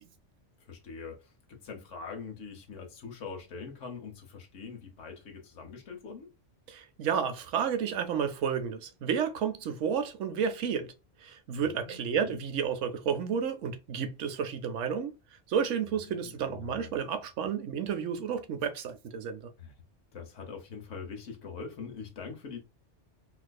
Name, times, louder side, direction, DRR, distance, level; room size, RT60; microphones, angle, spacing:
voice 1, 0.6-6.3 11.6-12.4 16.0-16.9 19.6-19.7 20.1-22.6, left 5 dB, 90° left, 1.3 m, -43 dB
voice 2, 6.7-10.9 11.2-15.1 15.5-19.4, right 7 dB, 90° right, 1.0 m, -31 dB
4.4 x 2.5 x 2.2 m
omnidirectional pair, 1.2 m